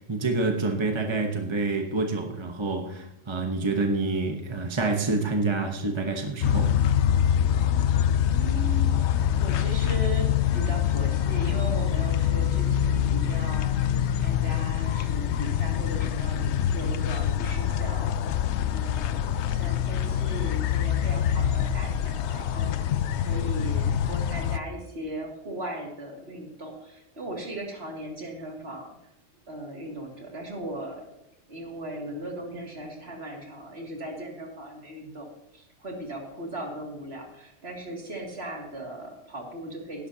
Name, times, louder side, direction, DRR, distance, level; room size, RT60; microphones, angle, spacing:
voice 1, 0.0-6.8, right 3 dB, 25° right, 3 dB, 1.0 m, -27 dB
sound 1, 6.4-24.6, left 9 dB, 65° left, 0.8 m, -25 dB
voice 2, 8.3-13.7 14.2-18.1 18.7-22.7 23.2-28.9 29.5-31.0 31.5-40.1, right 1 dB, 50° right, 0 dB, 2.8 m, -38 dB
16.5 x 11.5 x 2.8 m, 0.83 s
omnidirectional pair, 1.3 m